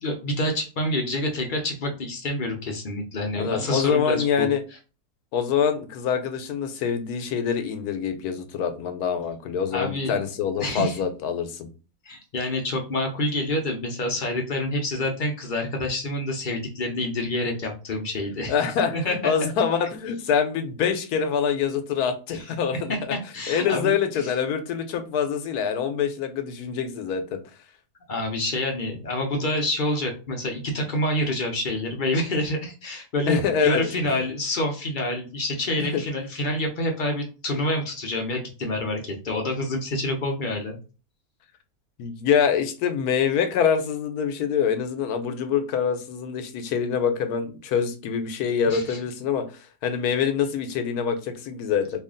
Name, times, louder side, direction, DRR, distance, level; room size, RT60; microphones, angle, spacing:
voice 1, 0.0-4.5 9.7-10.2 10.6-11.0 12.1-18.5 18.9-19.2 22.3-22.4 22.7-24.3 28.1-33.4 33.6-40.8 48.7-49.0, left 1 dB, 50° left, 2 dB, 0.6 m, -27 dB
voice 2, 3.4-4.6 5.3-11.7 18.5-22.9 23.5-27.4 33.3-34.2 35.8-36.0 42.0-49.4 49.8-52.0, left 7 dB, 80° left, 8 dB, 1.2 m, -25 dB
3.2 x 2.4 x 3.7 m, 0.33 s
omnidirectional pair, 1.6 m